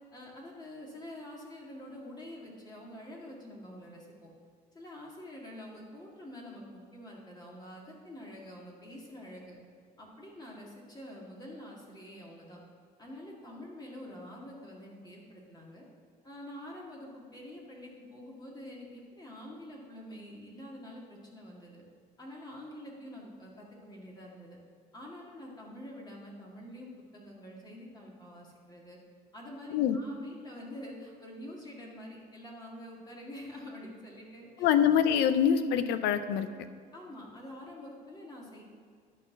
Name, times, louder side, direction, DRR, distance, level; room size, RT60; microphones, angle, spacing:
voice 1, 0.1-4.3 4.7-9.6 10.0-12.6 13.0-15.8 16.2-21.8 22.2-24.6 24.9-29.0 29.3-34.7 36.9-38.6, left 1 dB, 25° left, -3 dB, 2.0 m, -47 dB
voice 2, 34.6-36.5, left 8 dB, 90° left, 11 dB, 0.6 m, -25 dB
11.5 x 4.2 x 6.0 m, 2.1 s
cardioid pair, 110°, 17 cm